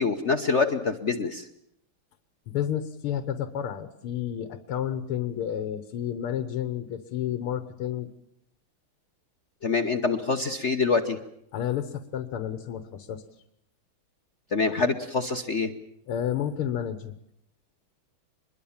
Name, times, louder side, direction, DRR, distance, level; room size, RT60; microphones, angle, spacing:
voice 1, 0.0-1.5 9.6-11.2 14.5-15.7, left 4 dB, 45° left, 6 dB, 1.0 m, -25 dB
voice 2, 2.5-8.1 11.5-13.2 16.1-17.1, left 10 dB, 85° left, 10 dB, 2.0 m, -31 dB
25.0 x 21.5 x 7.2 m, 0.76 s
omnidirectional pair, 2.3 m